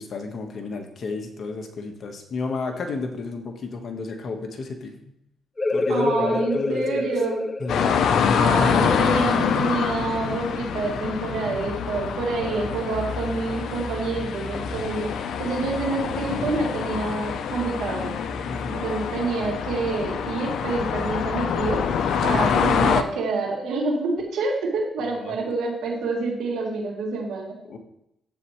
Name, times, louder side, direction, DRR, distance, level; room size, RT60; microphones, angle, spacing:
voice 1, 0.0-5.1 5.7-7.0 7.6-8.6 12.4-12.6 18.5-18.9 22.3-22.6 25.1-25.3 27.7-27.8, left 4 dB, 55° left, 4 dB, 1.3 m, -32 dB
sound 1, 5.6-10.9, left 2 dB, 20° left, 0.3 m, -29 dB
voice 2, 5.9-7.5 8.3-15.1 15.4-18.1 18.7-21.8 22.2-27.5, right 3 dB, 80° right, -2 dB, 2.9 m, -27 dB
sound 2, 7.7-23.0, left 7 dB, 70° left, 0.7 m, -25 dB
10.5 x 8.2 x 3.2 m, 0.80 s
cardioid pair, 90°, 0 cm